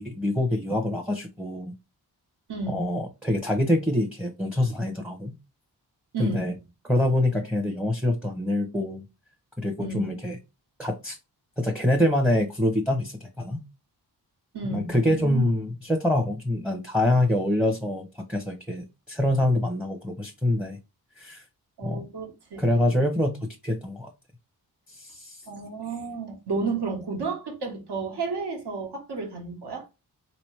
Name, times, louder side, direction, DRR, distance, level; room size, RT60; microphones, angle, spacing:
voice 1, 0.0-1.7 2.7-5.4 6.2-6.5 6.9-9.0 9.6-10.4 10.8-11.2 11.6-13.6 14.7-20.8 21.2-21.4 21.8-22.0 22.6-23.4 23.6-24.1 25.0-25.4, left 1 dB, 5° right, 0.7 m, -25 dB
voice 2, 2.5-2.9 6.1-6.5 9.8-10.2 14.5-15.5 21.8-23.0 25.5-29.9, right 4 dB, 65° right, 1.4 m, -32 dB
3.0 x 3.0 x 3.1 m
cardioid pair, 45°, 43 cm